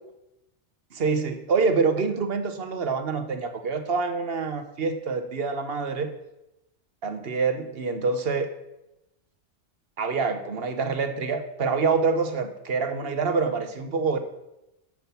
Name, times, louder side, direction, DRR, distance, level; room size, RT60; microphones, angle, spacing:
voice 1, 0.9-6.1 7.0-8.5 10.0-14.2, right 4 dB, 60° right, 8 dB, 1.1 m, -26 dB
9.3 x 5.9 x 6.9 m, 0.91 s
omnidirectional pair, 1.2 m